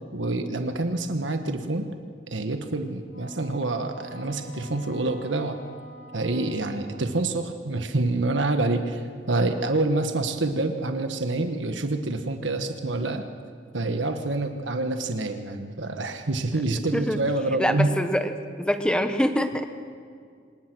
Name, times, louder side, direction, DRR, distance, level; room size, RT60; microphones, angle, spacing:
voice 1, 0.1-1.9 2.3-5.6 6.1-13.2 13.7-17.9, right 2 dB, 85° right, 6 dB, 1.4 m, -27 dB
Wind instrument woodwind instrument, 3.1-7.6, left 1 dB, 65° left, 2.9 m, -47 dB
voice 2, 17.6-18.3 18.6-19.7, equal, 5° left, 7 dB, 1.2 m, -24 dB
26.0 x 20.0 x 6.2 m, 2.2 s
head